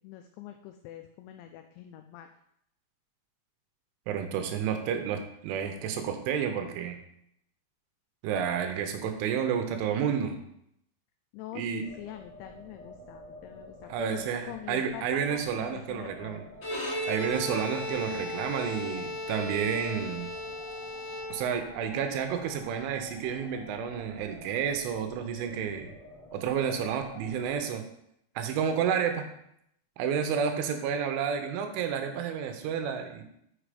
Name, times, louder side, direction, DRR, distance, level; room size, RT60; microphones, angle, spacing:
voice 1, 0.0-2.3 11.3-16.4, left 13 dB, 90° left, 7 dB, 2.5 m, -44 dB
voice 2, 4.1-7.0 8.2-10.4 11.6-11.8 13.9-16.5 17.1-20.3 21.3-25.9 26.3-27.8 28.4-29.2 30.0-33.3, right 7 dB, 80° right, 6 dB, 3.1 m, -30 dB
sound 1, 11.8-27.6, left 1 dB, 65° left, 0.5 m, -49 dB
Bowed string instrument, 16.5-21.8, left 1 dB, 50° left, 1.2 m, -36 dB
6.3 x 6.0 x 4.9 m, 0.75 s
omnidirectional pair, 5.7 m